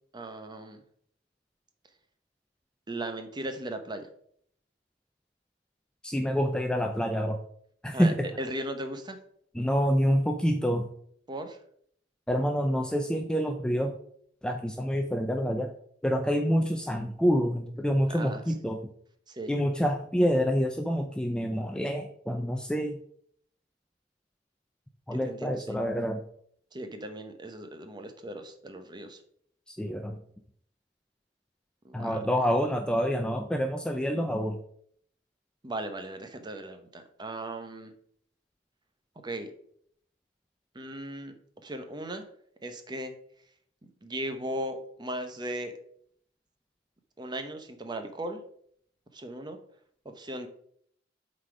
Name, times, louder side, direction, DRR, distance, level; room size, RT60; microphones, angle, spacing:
voice 1, 0.1-0.8 2.9-4.1 7.9-9.2 11.3-11.6 18.1-18.4 19.3-19.5 25.1-25.8 26.7-29.2 31.8-32.2 35.6-37.9 39.2-39.5 40.7-41.3 41.6-42.3 42.6-43.1 44.0-45.7 47.2-48.4 49.1-49.6 50.0-50.5, right 1 dB, 25° right, 7 dB, 0.8 m, -37 dB
voice 2, 6.0-7.4 7.8-8.3 9.5-10.9 12.3-14.0 14.4-15.7 16.0-18.8 19.5-23.0 25.1-26.2 29.7-30.2 31.9-34.6, equal, 5° left, 4 dB, 0.4 m, -27 dB
8.0 x 4.1 x 4.9 m, 0.65 s
head